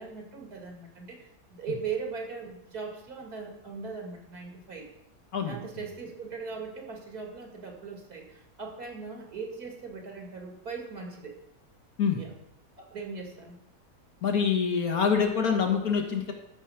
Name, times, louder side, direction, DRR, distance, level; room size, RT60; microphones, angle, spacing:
voice 1, 0.0-4.9 5.5-11.4 12.2-12.3 12.8-13.6, right 5 dB, 80° right, 2 dB, 2.8 m, -39 dB
voice 2, 14.2-16.3, left 6 dB, 70° left, 4 dB, 1.8 m, -25 dB
13.0 x 6.3 x 5.8 m, 0.82 s
omnidirectional pair, 1.6 m